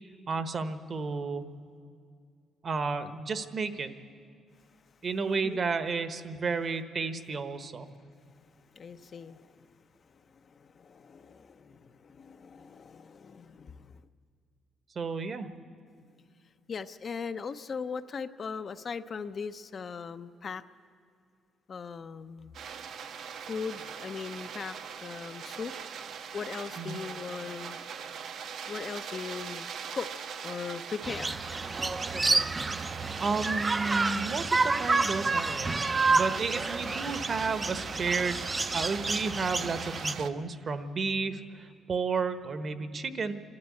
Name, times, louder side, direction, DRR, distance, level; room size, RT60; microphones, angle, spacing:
voice 1, 0.3-1.4 2.6-3.9 5.0-7.9 14.9-15.5 26.8-27.0 33.2-35.7 36.1-43.3, right 4 dB, 45° right, 10 dB, 1.2 m, -32 dB
voice 2, 5.3-5.6 8.6-14.0 16.7-20.6 21.7-22.6 23.5-25.8 26.3-27.8 28.7-30.1 30.4-31.5, left 5 dB, 45° left, 10 dB, 0.7 m, -39 dB
sound 1, 22.5-40.3, right 7 dB, 70° right, 1.2 m, -42 dB
sound 2, 31.0-40.2, right 3 dB, 25° right, 0.6 m, -29 dB
26.0 x 13.0 x 8.5 m, 2.3 s
cardioid pair, 90°, 0 cm